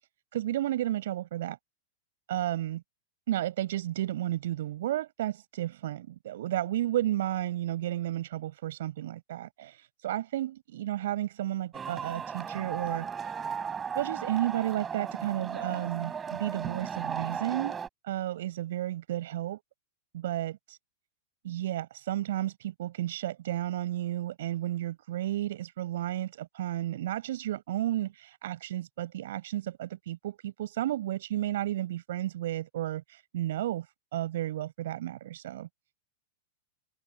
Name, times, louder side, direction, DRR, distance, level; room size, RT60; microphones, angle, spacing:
voice 1, 0.3-1.6 2.3-2.8 3.3-13.1 13.9-17.8 18.0-19.6 20.1-20.8 21.4-33.9 34.1-35.7, right 13 dB, 65° right, 7.2 m, -32 dB
sound 1, 11.7-17.9, right 7 dB, 20° right, 5.8 m, -36 dB
hypercardioid pair, 100°, 0 cm